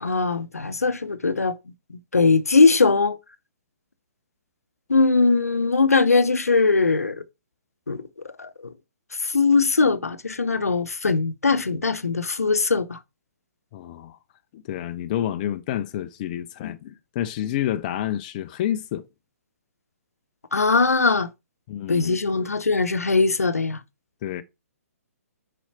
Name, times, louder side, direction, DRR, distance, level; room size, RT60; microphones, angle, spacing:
voice 1, 0.0-1.6 1.9-3.2 4.9-7.2 7.9-8.0 8.4-8.7 9.2-13.0 20.5-21.3 21.9-23.8, left 4 dB, 70° left, 0.8 m, -20 dB
voice 2, 13.7-14.2 14.5-19.1 21.7-22.2 24.2-24.4, left 11 dB, 30° left, 0.5 m, -29 dB
7.1 x 5.0 x 4.3 m
figure-of-eight pair, 125°, 8 cm